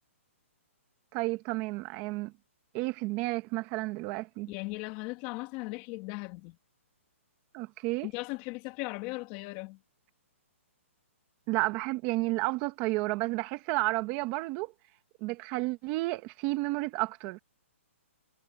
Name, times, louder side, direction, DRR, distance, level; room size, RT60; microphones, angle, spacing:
voice 1, 1.1-2.3 2.7-4.5 7.5-8.1 11.5-14.7 15.2-17.4, right 21 dB, 25° right, 1.3 m, -31 dB
voice 2, 4.5-6.6 8.0-9.8, left 24 dB, 25° left, 2.0 m, -38 dB
hypercardioid pair, 165°, 7 cm